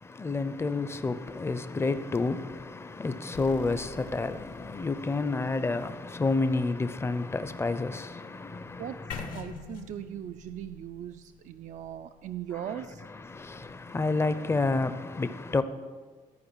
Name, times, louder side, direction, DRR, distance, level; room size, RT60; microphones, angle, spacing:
voice 1, 0.0-9.1 13.2-15.6, left 3 dB, 15° left, 0.6 m, -30 dB
sound 1, 3.3-6.1, left 6 dB, 60° left, 0.8 m, -49 dB
sound 2, 9.1-13.1, left 5 dB, 75° left, 1.6 m, -43 dB
voice 2, 9.3-13.0, right 10 dB, 60° right, 0.4 m, -39 dB
13.5 x 4.7 x 7.1 m
cardioid pair, 105°, 14 cm